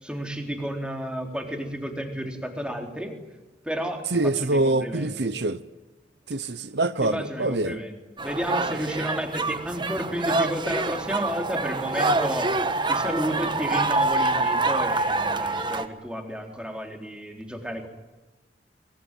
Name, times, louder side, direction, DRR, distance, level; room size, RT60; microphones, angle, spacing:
voice 1, 0.0-3.2 3.6-5.3 7.0-12.5 12.9-17.9, equal, 5° right, 3 dB, 3.8 m, -32 dB
voice 2, 4.1-5.6 6.3-7.8, right 2 dB, 70° right, 13 dB, 0.9 m, -25 dB
sound 1, 8.2-15.9, right 3 dB, 25° right, 1.4 m, -26 dB
23.5 x 22.5 x 9.2 m, 1.1 s
head